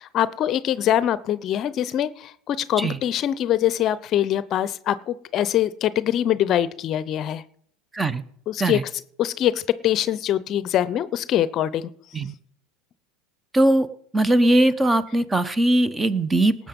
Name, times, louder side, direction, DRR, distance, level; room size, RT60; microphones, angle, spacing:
voice 1, 0.0-7.4 8.5-8.8 9.2-11.9, left 11 dB, 45° left, 17 dB, 0.7 m, -23 dB
voice 2, 13.5-13.9 14.1-16.6, right 1 dB, 15° right, 16 dB, 0.9 m, -20 dB
18.5 x 7.5 x 5.3 m, 0.65 s
hypercardioid pair, 85°, 0 cm